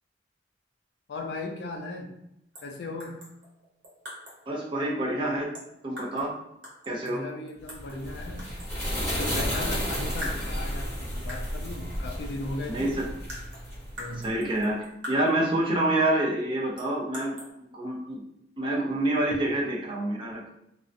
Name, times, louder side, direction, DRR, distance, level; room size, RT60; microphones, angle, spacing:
voice 1, 1.1-2.1 2.6-3.2 7.0-8.5 9.1-13.0 14.0-14.3, left 2 dB, 65° left, 3 dB, 0.4 m, -37 dB
sound 1, 2.5-2.7 3.0-4.5 5.5-6.3 6.6-8.0 8.4-8.9 9.5-9.9 10.2-10.9 11.3-11.6 12.5-12.6 12.9-15.5 16.8-17.5, left 1 dB, 80° right, 0.9 m, -43 dB
voice 2, 4.5-5.5 5.8-6.3 6.9-7.2 12.7-13.0 14.2-14.8 15.1-17.4 17.7-18.2 18.6-20.4, right 1 dB, 25° right, -3 dB, 0.4 m, -27 dB
sound 2, 7.7-14.4, equal, 10° left, 0.8 m, -32 dB
2.5 x 2.0 x 2.5 m, 0.81 s
head